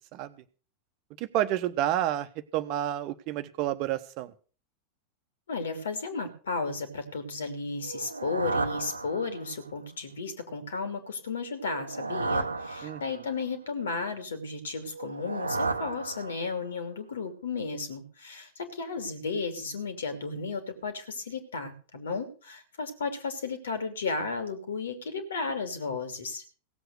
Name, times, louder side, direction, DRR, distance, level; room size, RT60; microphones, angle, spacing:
voice 1, 1.2-2.3 2.5-4.3 12.8-13.0, right 12 dB, 40° right, 10 dB, 1.1 m, -29 dB
voice 2, 5.5-26.4, left 4 dB, 65° left, 9 dB, 2.8 m, -34 dB
sound 1, 7.8-9.7 11.6-13.4 14.9-16.7, right 3 dB, 80° right, 0.9 m, -33 dB
17.0 x 7.9 x 6.6 m, 0.38 s
figure-of-eight pair, 90°, 0 cm